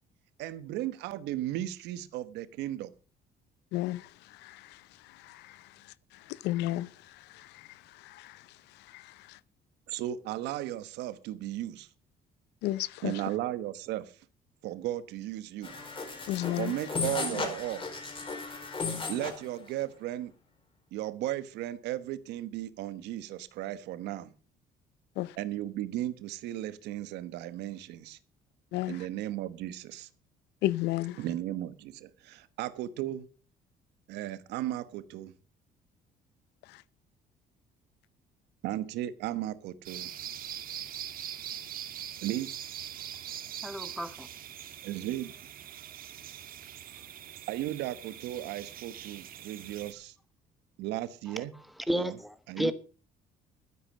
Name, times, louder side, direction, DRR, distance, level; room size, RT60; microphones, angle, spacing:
voice 1, 0.4-2.9 9.9-11.9 13.0-14.2 14.6-15.7 16.6-17.9 19.1-20.3 20.9-24.3 25.4-28.2 28.9-30.1 31.2-33.3 34.1-35.3 38.6-40.1 42.2-42.5 44.8-45.3 47.5-50.1 50.8-51.5 51.9-52.1 52.5-52.7, right 13 dB, 85° right, 1.2 m, -35 dB
voice 2, 6.4-6.9 12.6-13.1 16.3-16.7 25.2-25.3 28.7-29.0 30.6-31.2, left 16 dB, 90° left, 0.7 m, -30 dB
sound 1, 15.6-19.4, left 4 dB, 30° left, 4.6 m, -35 dB
sound 2, 39.8-49.9, right 10 dB, 60° right, 1.5 m, -42 dB
voice 3, 43.6-44.3 51.4-51.5 51.9-52.7, equal, ahead, 1.4 m, -32 dB
12.5 x 10.0 x 6.4 m
cardioid pair, 110°, 17 cm